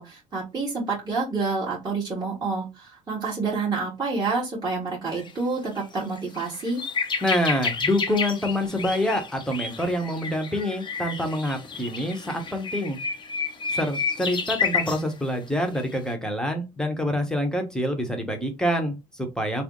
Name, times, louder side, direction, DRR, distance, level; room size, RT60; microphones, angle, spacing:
voice 1, 0.0-6.8, right 4 dB, 20° right, -5 dB, 1.6 m, -28 dB
sound 1, 5.1-5.3 5.8-5.9 6.2-15.0 15.8-16.0, left 5 dB, 25° left, 0.6 m, -30 dB
voice 2, 7.2-13.0 13.7-19.6, equal, 5° left, 4 dB, 1.0 m, -26 dB
3.4 x 2.0 x 3.8 m, 0.24 s
supercardioid pair, 95°, 19 cm